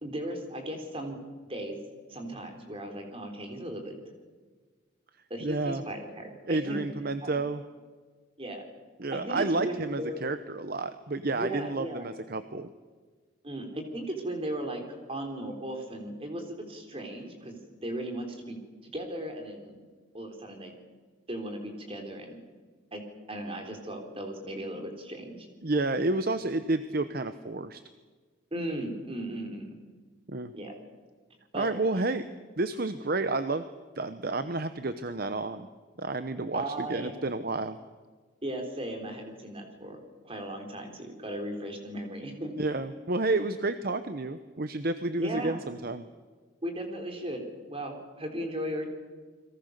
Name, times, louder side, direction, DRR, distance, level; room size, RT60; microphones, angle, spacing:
voice 1, 0.0-1.2 1.5-1.8 2.1-3.9 5.3-6.8 7.2-7.4 8.4-8.6 9.1-10.2 11.3-12.1 13.4-18.6 18.9-19.8 20.1-20.7 21.3-22.6 22.9-23.0 23.3-25.5 28.5-29.8 30.5-30.7 31.5-31.7 32.0-32.1 36.5-37.1 38.4-42.5 45.2-45.6 46.6-47.4 47.7-48.9, right 1 dB, 30° right, 3 dB, 3.9 m, -36 dB
voice 2, 5.4-5.8 6.5-7.6 9.0-12.7 25.6-27.8 30.3-30.5 31.5-32.2 32.6-33.6 34.0-35.7 36.0-37.8 42.6-46.0, right 2 dB, 50° right, 10 dB, 0.9 m, -30 dB
29.5 x 22.0 x 6.7 m, 1.4 s
head